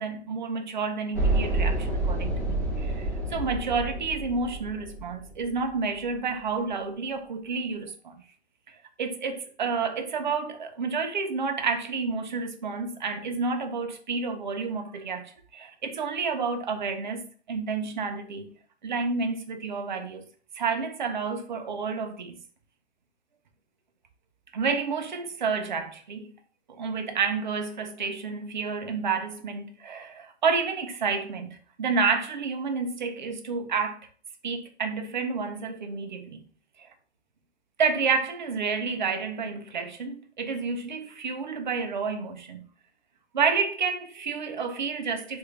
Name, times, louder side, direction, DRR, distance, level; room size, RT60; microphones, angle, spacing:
voice 1, 0.0-8.2 9.0-18.5 18.8-20.3 20.5-22.4 24.5-26.3 26.7-34.0 34.4-36.4 36.8-36.9 37.8-42.7 43.3-45.4, right 5 dB, 45° right, 0.5 m, -30 dB
sound 1, 1.1-5.4, right 2 dB, 10° left, 0.6 m, -28 dB
3.3 x 2.5 x 3.1 m
hypercardioid pair, 180°, 34 cm